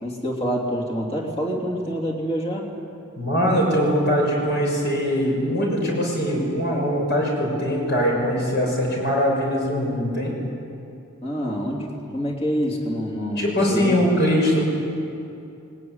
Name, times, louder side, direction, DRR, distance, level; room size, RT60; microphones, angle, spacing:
voice 1, 0.0-2.7 11.2-14.0, equal, 25° left, -2 dB, 3.0 m, -26 dB
voice 2, 3.2-10.3 13.4-14.6, equal, 50° left, -1 dB, 6.3 m, -22 dB
20.0 x 19.0 x 9.6 m, 2.6 s
head